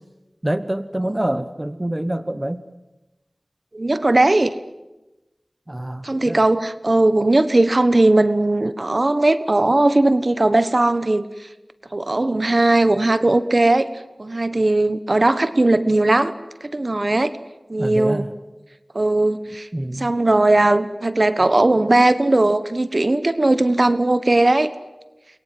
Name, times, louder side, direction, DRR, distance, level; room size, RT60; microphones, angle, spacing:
voice 1, 0.4-2.6 5.7-6.4 17.8-18.3 19.7-20.2, right 1 dB, 25° right, 12 dB, 1.1 m, -26 dB
voice 2, 3.7-4.5 6.0-11.3 11.9-13.9 14.2-16.3 16.6-17.3 17.7-18.3 18.9-19.7 20.0-24.7, right 2 dB, 50° right, 12 dB, 1.3 m, -18 dB
29.5 x 23.0 x 7.8 m, 1.0 s
wide cardioid pair, 55°, 0 cm